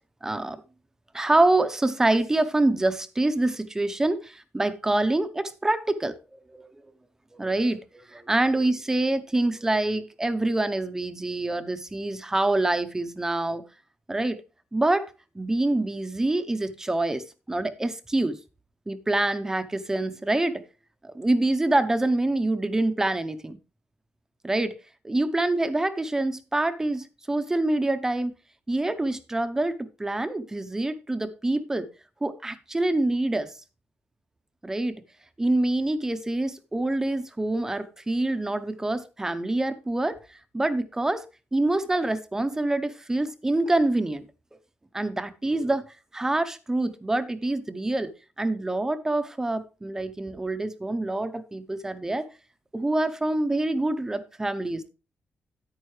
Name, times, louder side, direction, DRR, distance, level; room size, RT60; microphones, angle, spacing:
voice 1, 0.2-0.6 1.1-6.2 6.5-6.7 7.3-13.6 14.1-14.4 14.7-18.4 18.9-20.6 21.0-23.6 24.4-24.8 25.0-28.3 28.7-31.9 32.2-33.5 34.6-34.9 35.4-40.2 40.5-41.2 41.5-44.2 44.9-45.9 46.1-48.1 48.4-52.3 52.7-54.9, right 2 dB, 15° right, 0.7 m, -26 dB
9.6 x 9.1 x 3.2 m
wide cardioid pair, 140°, 4 cm